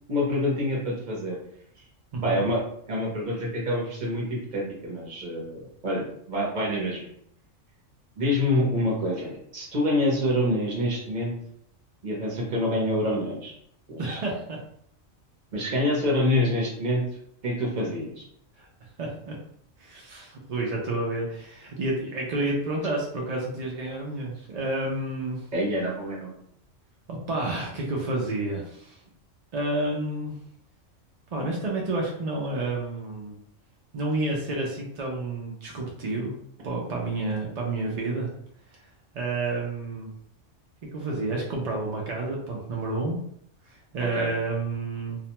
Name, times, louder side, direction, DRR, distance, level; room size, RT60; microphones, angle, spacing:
voice 1, 0.1-1.4 2.2-2.6 2.9-7.1 8.2-11.3 12.0-13.5 13.9-14.2 15.5-17.0 17.4-18.2 25.5-26.3 44.1-44.3, left 1 dB, 40° right, -3 dB, 0.7 m, -26 dB
voice 2, 2.1-2.4 14.0-14.6 18.6-18.7 19.0-19.4 19.8-25.4 27.1-29.0 29.5-30.3 31.3-33.4 33.9-36.3 36.6-38.3 39.1-40.1 40.9-43.2 43.7-45.2, right 2 dB, 70° right, -2 dB, 0.4 m, -30 dB
2.4 x 2.1 x 2.8 m, 0.68 s
omnidirectional pair, 1.4 m